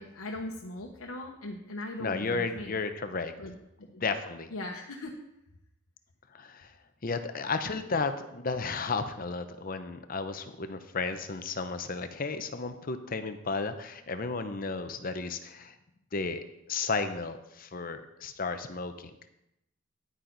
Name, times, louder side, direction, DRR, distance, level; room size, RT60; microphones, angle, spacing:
voice 1, 0.0-2.8 3.4-3.6 3.9-4.0 4.5-5.1, left 1 dB, 85° left, 0 dB, 1.0 m, -39 dB
voice 2, 2.0-3.3 4.0-4.5 6.3-6.7 7.0-15.7 16.1-19.1, left 4 dB, 45° left, 9 dB, 0.7 m, -33 dB
10.5 x 9.0 x 4.0 m, 0.84 s
head